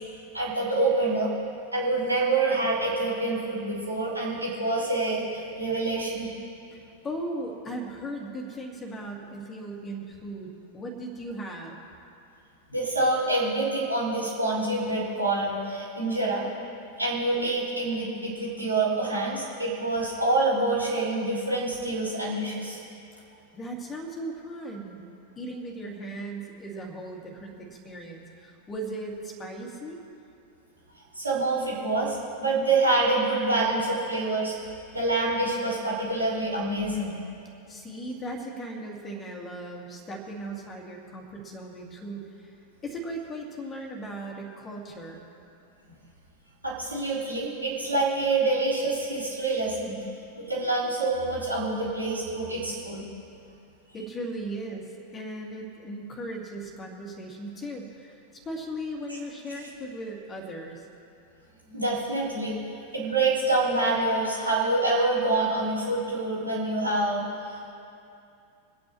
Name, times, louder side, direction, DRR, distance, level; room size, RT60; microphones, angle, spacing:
voice 1, 0.3-1.3 1.7-6.3 12.7-16.4 17.0-22.8 31.1-34.5 34.9-37.2 46.6-50.0 50.5-53.0 61.7-62.6 62.9-67.2, right 2 dB, 85° right, -9 dB, 4.1 m, -26 dB
voice 2, 6.7-11.8 23.5-25.0 25.4-30.0 37.7-42.6 42.8-45.3 53.9-60.9, right 1 dB, 20° left, 0 dB, 2.4 m, -37 dB
28.0 x 9.4 x 3.2 m, 2.6 s
figure-of-eight pair, 90°, 0 cm